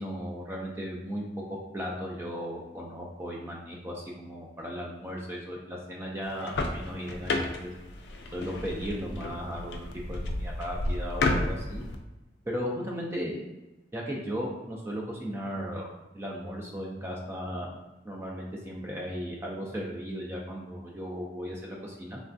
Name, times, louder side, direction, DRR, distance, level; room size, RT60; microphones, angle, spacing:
voice 1, 0.0-7.7 8.3-11.8 12.5-13.4 13.9-15.9 16.1-17.8 18.1-22.2, equal, 15° right, -2 dB, 0.3 m, -36 dB
Someone getting out of their car, 6.2-12.0, left 2 dB, 70° left, 0.4 m, -32 dB
3.2 x 2.3 x 2.5 m, 1.0 s
head